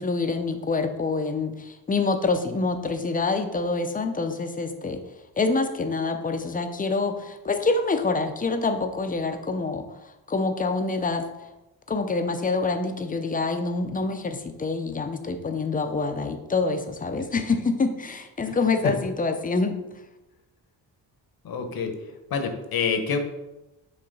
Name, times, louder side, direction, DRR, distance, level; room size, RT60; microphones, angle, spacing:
voice 1, 0.0-5.0 5.4-9.9 10.3-11.3 11.9-19.8, left 3 dB, 20° left, 7 dB, 0.5 m, -26 dB
voice 2, 21.4-21.9 22.3-23.2, left 6 dB, 55° left, 6 dB, 0.9 m, -27 dB
5.5 x 3.2 x 5.3 m, 0.98 s
cardioid pair, 110°, 42 cm